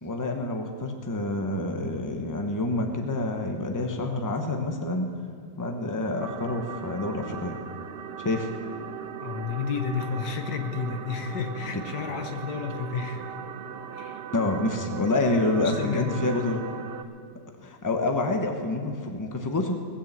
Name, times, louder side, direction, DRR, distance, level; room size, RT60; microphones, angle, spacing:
voice 1, 0.0-5.1 5.6-7.6 8.2-8.5 14.3-16.6 17.6-19.8, left 2 dB, 15° left, 3 dB, 0.9 m, -27 dB
sound 1, 6.2-17.0, right 8 dB, 60° right, 0.6 m, -38 dB
voice 2, 9.2-13.4 13.9-14.3 15.5-16.2, left 6 dB, 85° left, 6 dB, 1.6 m, -31 dB
18.5 x 7.1 x 7.5 m, 2.2 s
omnidirectional pair, 1.7 m